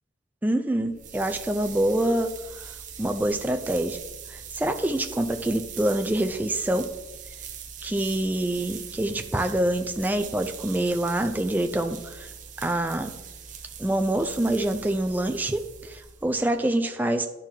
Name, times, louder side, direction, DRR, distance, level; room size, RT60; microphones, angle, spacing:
voice 1, 0.4-4.0 4.3-6.9 7.8-12.3 12.6-13.1 13.8-17.3, right 1 dB, 10° right, 5 dB, 0.4 m, -26 dB
sound 1, 0.8-16.6, right 7 dB, 40° right, 0.7 m, -42 dB
11.0 x 4.5 x 3.7 m, 1.1 s
head